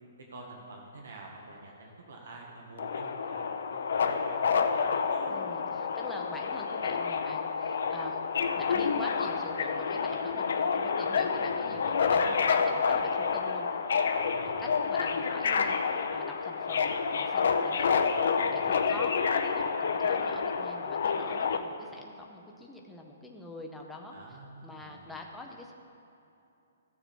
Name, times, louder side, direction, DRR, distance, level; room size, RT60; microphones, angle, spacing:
voice 1, 0.3-5.5 11.4-12.2 14.2-14.7 18.4-18.7 24.1-25.2, right 2 dB, 80° right, 0 dB, 1.8 m, -48 dB
Subway metro underground, 2.8-21.6, left 5 dB, 60° left, 0.6 m, -29 dB
voice 2, 5.3-8.2 8.5-13.7 14.4-15.8 16.1-17.9 18.5-25.7, left 2 dB, 5° left, 0 dB, 0.6 m, -44 dB
14.0 x 6.8 x 4.5 m, 2.7 s
hypercardioid pair, 175°, 0 cm